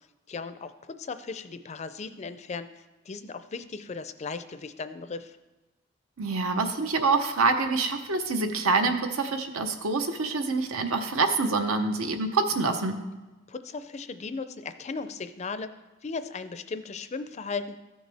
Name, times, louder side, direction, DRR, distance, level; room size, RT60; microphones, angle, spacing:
voice 1, 0.3-5.4 13.5-15.7 16.0-17.8, left 4 dB, 30° left, 11 dB, 0.4 m, -37 dB
voice 2, 6.2-13.0, right 3 dB, 85° right, 7 dB, 0.9 m, -26 dB
14.5 x 6.4 x 3.4 m, 1.1 s
head